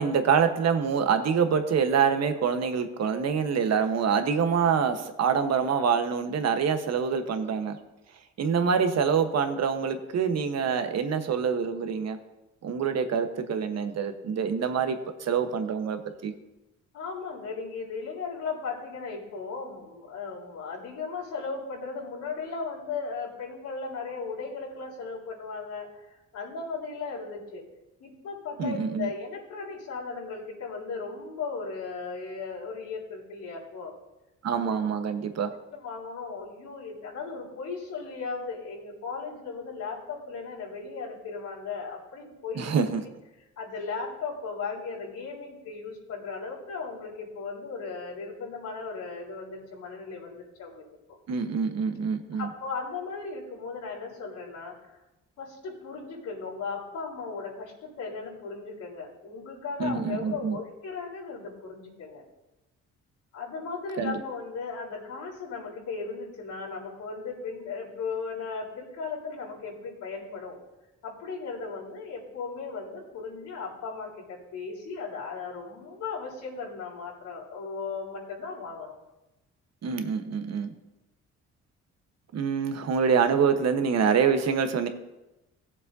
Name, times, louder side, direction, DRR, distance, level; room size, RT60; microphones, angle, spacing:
voice 1, 0.0-7.8 8.4-12.2 12.6-16.3 28.6-29.1 34.4-35.5 42.6-43.0 51.3-52.5 59.8-60.6 64.0-64.2 79.8-80.7 82.3-84.9, right 6 dB, 60° right, 8 dB, 1.2 m, -26 dB
voice 2, 16.9-27.7 28.0-33.9 34.6-34.7 35.7-42.7 43.6-50.8 52.3-55.0 55.4-62.2 63.3-70.6 71.0-79.0, left 4 dB, 80° left, -5 dB, 3.9 m, -36 dB
17.0 x 7.4 x 2.7 m, 1.0 s
cardioid pair, 90°, 30 cm